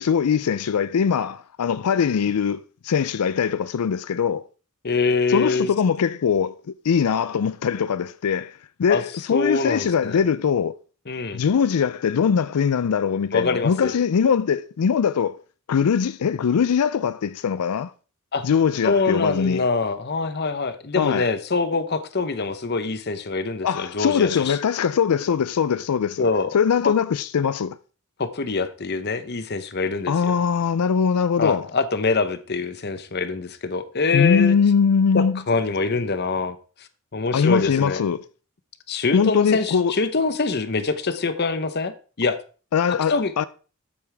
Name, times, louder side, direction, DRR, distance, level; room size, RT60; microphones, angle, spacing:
voice 1, 0.0-4.5 5.3-6.6 6.8-8.5 8.8-10.7 11.3-15.4 15.7-17.9 18.4-19.6 21.0-21.3 23.6-26.3 26.5-27.8 30.1-31.7 34.1-35.4 37.3-38.2 39.1-39.9 42.7-43.4, left 6 dB, 90° left, 0.4 m, -21 dB
voice 2, 4.8-5.7 8.9-9.0 9.3-10.2 11.1-11.4 13.3-13.9 18.3-18.5 18.8-24.6 26.2-26.5 26.8-26.9 28.2-30.4 31.4-34.6 35.1-36.6 37.1-38.0 38.9-42.4 42.9-43.5, left 4 dB, 45° left, 0.9 m, -24 dB
12.0 x 8.6 x 3.4 m
head